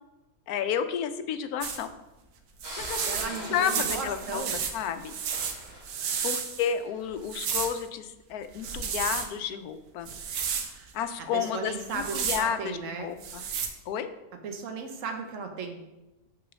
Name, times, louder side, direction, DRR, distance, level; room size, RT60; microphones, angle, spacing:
voice 1, 0.5-1.9 2.8-3.2 3.5-4.4 4.7-5.2 6.2-10.1 10.9-13.4 13.9-14.1, left 8 dB, 85° left, 10 dB, 1.1 m, -31 dB
sound 1, 1.6-1.8 2.6-6.7 7.2-7.8 8.5-9.3 10.1-10.7 11.8-12.4 13.2-13.7, right 7 dB, 90° right, 1.3 m, -32 dB
sound 2, 2.6-7.1, equal, 30° right, 2.8 m, -43 dB
voice 2, 3.0-4.6 11.2-13.1 14.4-15.8, right 4 dB, 65° right, 4 dB, 1.2 m, -35 dB
6.2 x 3.8 x 6.1 m, 1.0 s
omnidirectional pair, 1.5 m